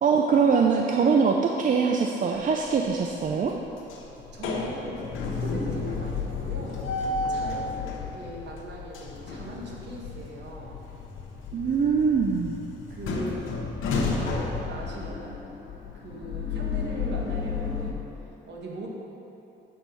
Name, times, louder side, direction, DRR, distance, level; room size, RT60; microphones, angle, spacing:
voice 1, 0.0-3.5 11.5-12.5, right 5 dB, 40° right, 1 dB, 0.5 m, -23 dB
sound 1, 2.4-2.9 3.3-17.9, left 4 dB, 90° left, 0.9 m, -32 dB
voice 2, 4.3-6.8 7.3-10.8 12.9-13.5 14.1-15.4 15.9-18.1 18.5-18.9, right 1 dB, 60° right, -2 dB, 1.5 m, -39 dB
7.6 x 4.5 x 5.4 m, 3.0 s
cardioid pair, 90°, 20 cm